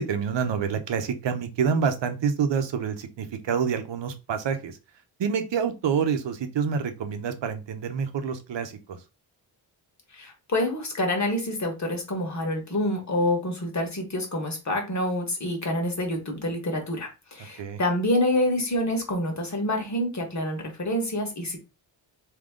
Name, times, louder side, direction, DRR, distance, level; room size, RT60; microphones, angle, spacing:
voice 1, 0.0-4.8 5.2-9.0 17.6-17.8, right 6 dB, 70° right, 8 dB, 0.8 m, -27 dB
voice 2, 10.1-21.6, left 1 dB, 40° left, 3 dB, 1.5 m, -27 dB
3.6 x 3.0 x 3.7 m, 0.28 s
wide cardioid pair, 100°, 45 cm